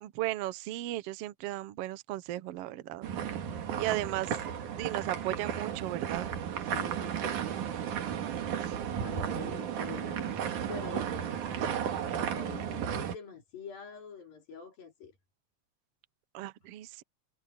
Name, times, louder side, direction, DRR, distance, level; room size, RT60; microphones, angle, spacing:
voice 1, 0.0-3.1 3.7-4.4 4.8-6.3 8.6-8.8 16.3-17.0, right 16 dB, 80° right, 1.3 m, -35 dB
sound 1, 3.0-13.1, right 8 dB, 65° right, 3.2 m, -34 dB
voice 2, 6.6-7.5 9.0-15.2, left 6 dB, 90° left, 6.6 m, -46 dB
omnidirectional pair, 3.9 m